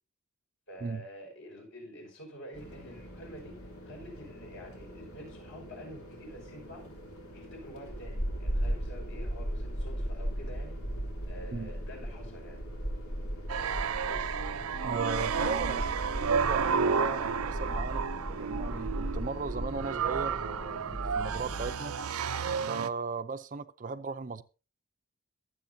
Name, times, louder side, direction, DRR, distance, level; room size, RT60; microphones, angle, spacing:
voice 1, 0.7-6.9 7.3-10.8 11.3-12.6 14.0-14.4 15.2-15.9, equal, 65° left, 5.6 m, -48 dB
sound 1, 2.5-21.7, equal, 90° left, 3.2 m, -38 dB
sound 2, 13.5-22.9, right 6 dB, 85° right, 0.5 m, -32 dB
voice 2, 14.8-15.8 16.2-18.0 18.3-21.9 22.7-24.4, right 4 dB, 35° right, 0.5 m, -36 dB
22.5 x 7.8 x 2.7 m
head